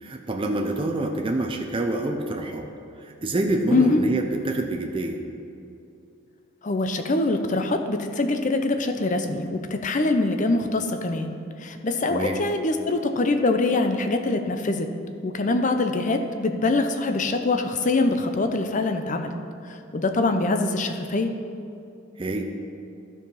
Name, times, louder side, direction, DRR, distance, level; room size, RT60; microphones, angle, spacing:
voice 1, 0.0-2.7 3.0-5.2 12.1-12.4 22.2-22.4, right 2 dB, 25° right, 3 dB, 0.6 m, -26 dB
voice 2, 3.7-4.0 6.6-14.9 15.2-19.3 19.7-21.3, left 2 dB, 40° left, 6 dB, 0.6 m, -24 dB
12.5 x 4.8 x 5.5 m, 2.6 s
head